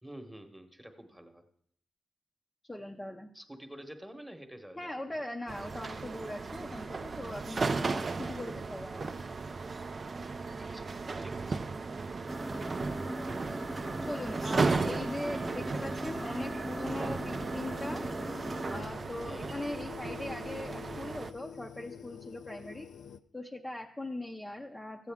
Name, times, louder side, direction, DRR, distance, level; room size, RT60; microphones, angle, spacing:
voice 1, 0.0-1.4 3.3-5.3 10.6-10.9 11.2-11.6 19.2-19.5, right 1 dB, 5° right, 6 dB, 1.1 m, -48 dB
voice 2, 2.7-3.3 4.8-9.1 14.0-18.0 18.7-22.9 23.3-25.1, left 1 dB, 15° left, 1 dB, 0.6 m, -40 dB
sound 1, 5.5-21.3, right 4 dB, 40° right, 0.4 m, -36 dB
sound 2, 12.3-18.8, right 1 dB, 25° right, 1.0 m, -38 dB
sound 3, 14.8-23.2, left 8 dB, 80° left, 0.4 m, -48 dB
13.5 x 8.2 x 3.5 m, 0.67 s
cardioid pair, 90°, 0 cm